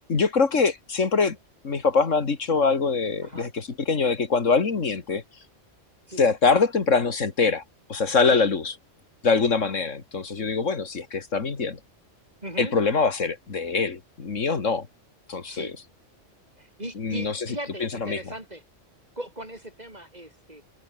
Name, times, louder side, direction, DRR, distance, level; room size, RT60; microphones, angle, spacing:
voice 1, 0.1-1.4 1.6-5.2 6.2-7.6 7.9-8.7 9.2-11.8 12.6-14.9 15.3-15.7 17.0-17.4 17.8-18.2, left 4 dB, 80° left, 2.4 m, -23 dB
voice 2, 12.4-12.7 15.5-15.7 16.6-18.6 19.2-20.6, right 1 dB, 35° right, 7.2 m, -38 dB
omnidirectional pair, 1.3 m